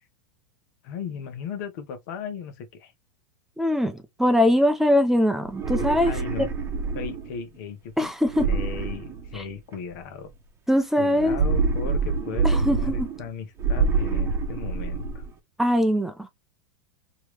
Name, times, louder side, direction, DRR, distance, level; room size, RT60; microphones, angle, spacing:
voice 1, 0.8-2.9 6.0-6.5 6.9-8.1 8.4-10.3 11.0-15.2, left 6 dB, 65° left, 1.1 m, -36 dB
voice 2, 3.6-6.1 8.0-8.5 9.3-9.4 10.7-11.4 12.4-13.1 15.6-16.3, left 1 dB, 5° right, 0.6 m, -22 dB
sound 1, 5.5-7.4 8.3-9.7 11.1-13.3 13.6-15.3, right 4 dB, 25° right, 1.1 m, -26 dB
3.0 x 3.0 x 3.1 m
hypercardioid pair, 110°, 11 cm